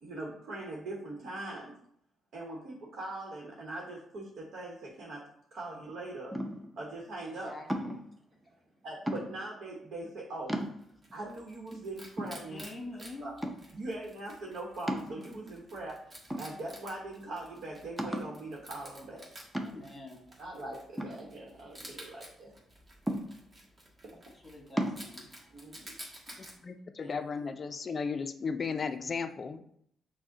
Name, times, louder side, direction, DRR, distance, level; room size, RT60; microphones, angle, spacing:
voice 1, 0.0-1.7 2.3-5.2 5.5-6.4 6.8-7.5 8.8-10.6 11.1-12.6 13.2-13.3 13.7-16.0 16.4-19.2 20.4-22.5 25.5-26.0 27.0-27.1, right 2 dB, 65° right, -2 dB, 1.0 m, -41 dB
sound 1, 6.3-6.8 7.7-8.1 9.1-9.6 10.1-10.2 10.5-11.1 11.7-11.8 12.2-12.9 13.4-13.8 14.9-15.6 16.3-16.9 17.3-17.4 18.0-18.4 19.5-20.0 21.0-21.9 23.1-23.7 24.8-25.0, equal, 10° right, 0.6 m, -35 dB
voice 2, 7.2-8.0 12.5-13.3 19.6-20.2 24.4-25.5, left 2 dB, 20° left, 1 dB, 1.2 m, -46 dB
Wild animals, 10.6-26.6, right 1 dB, 25° right, 1.3 m, -52 dB
voice 3, 26.3-29.6, left 5 dB, 40° left, 8 dB, 0.4 m, -35 dB
6.0 x 2.1 x 3.8 m, 0.69 s
cardioid pair, 100°, 0 cm